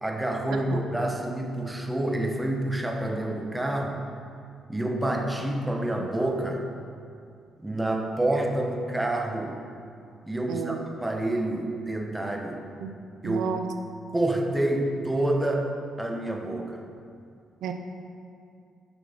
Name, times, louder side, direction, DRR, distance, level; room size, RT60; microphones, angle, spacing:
voice 1, 0.0-4.0 4.7-6.7 7.6-9.6 10.3-12.6 13.2-13.5 14.1-15.7 16.0-16.8, right 1 dB, 10° right, 2 dB, 1.1 m, -28 dB
voice 2, 10.5-10.8 12.8-12.9 13.2-13.7 17.6-17.7, right 7 dB, 80° right, 6 dB, 0.6 m, -31 dB
7.8 x 6.2 x 5.7 m, 2.4 s
cardioid pair, 90°, 0 cm